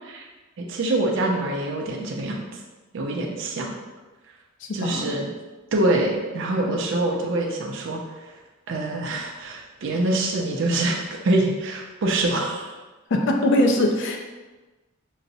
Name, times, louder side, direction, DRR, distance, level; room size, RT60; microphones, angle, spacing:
voice 1, 0.6-2.5 2.9-3.8 4.7-5.3 5.7-8.3 8.7-12.8, right 2 dB, 65° right, 0 dB, 0.5 m, -25 dB
voice 2, 4.7-5.1 13.1-14.2, left 1 dB, 65° left, 3 dB, 0.4 m, -21 dB
3.9 x 2.0 x 2.6 m, 1.2 s
head